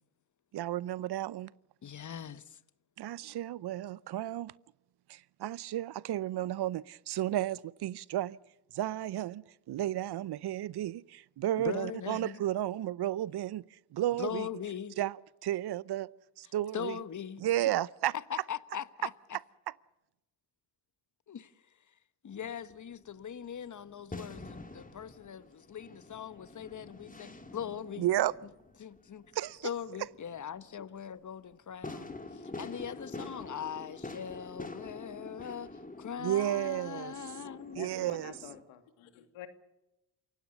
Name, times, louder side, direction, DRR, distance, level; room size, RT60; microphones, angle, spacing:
voice 1, 0.5-1.5 3.0-4.5 5.1-8.4 8.7-14.5 15.0-16.1 16.4-17.0 17.4-18.1 28.0-28.3 29.3-29.7 36.2-37.1 37.7-38.3, right 13 dB, 55° right, 0.7 m, -33 dB
voice 2, 1.8-2.6 11.6-12.4 14.2-15.0 16.7-17.4 18.3-19.1 21.3-21.5 22.2-28.1 28.8-29.2 29.6-37.8, left 8 dB, 40° left, 1.3 m, -41 dB
sound 1, 22.3-38.6, left 2 dB, 15° left, 2.9 m, -47 dB
voice 3, 37.7-39.5, left 11 dB, 80° left, 2.5 m, -48 dB
28.5 x 16.5 x 6.9 m
hypercardioid pair, 55°, 47 cm